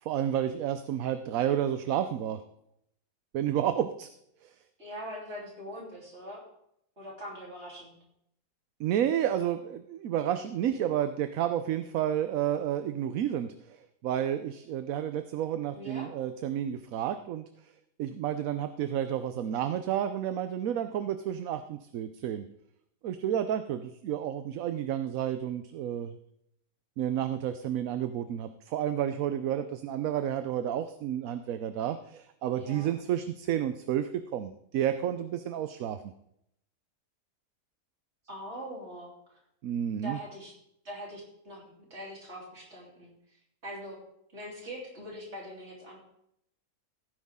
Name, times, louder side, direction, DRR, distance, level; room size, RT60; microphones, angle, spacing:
voice 1, 0.0-2.4 3.3-4.1 4.4-4.5 8.8-13.8 14.0-17.4 18.0-22.5 23.0-26.1 27.0-36.0 39.6-40.2, right 10 dB, 70° right, 10 dB, 1.0 m, -31 dB
voice 2, 4.8-6.4 7.0-8.0 15.7-16.1 32.6-32.9 38.3-39.4 40.0-40.5 40.8-41.6 41.9-43.1 43.6-44.0 44.3-46.0, equal, 45° right, -2 dB, 3.7 m, -42 dB
16.5 x 9.5 x 3.6 m, 0.75 s
omnidirectional pair, 1.5 m